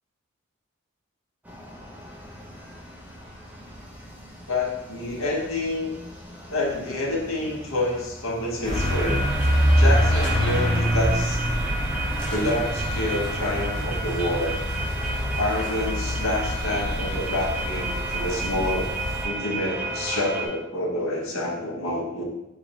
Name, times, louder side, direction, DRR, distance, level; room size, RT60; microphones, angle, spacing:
sound 1, 1.4-20.5, right 2 dB, 10° right, 0.5 m, -34 dB
voice 1, 4.5-5.9 6.5-9.2 9.8-11.4 12.3-14.6 15.3-19.0 19.2-22.2, left 1 dB, 85° left, 0 dB, 1.0 m, -28 dB
sound 2, 8.6-19.2, equal, 20° left, 1.1 m, -25 dB
3.7 x 3.2 x 4.0 m, 0.90 s
head